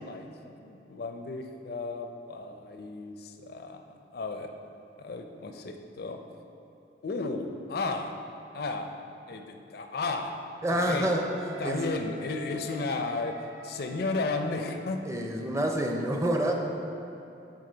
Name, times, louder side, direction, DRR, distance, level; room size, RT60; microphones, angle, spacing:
voice 1, 0.6-4.5 5.0-6.2 7.0-8.1 8.5-8.9 9.3-10.3 10.7-11.1 11.6-13.4 13.6-15.0, left 3 dB, 55° left, 5 dB, 0.5 m, -34 dB
voice 2, 10.6-11.3 11.6-11.9 15.1-16.5, right 1 dB, 15° right, 2 dB, 0.5 m, -27 dB
Wind instrument woodwind instrument, 11.0-14.9, left 2 dB, 80° right, 0.7 m, -46 dB
9.7 x 3.9 x 3.9 m, 2.7 s
head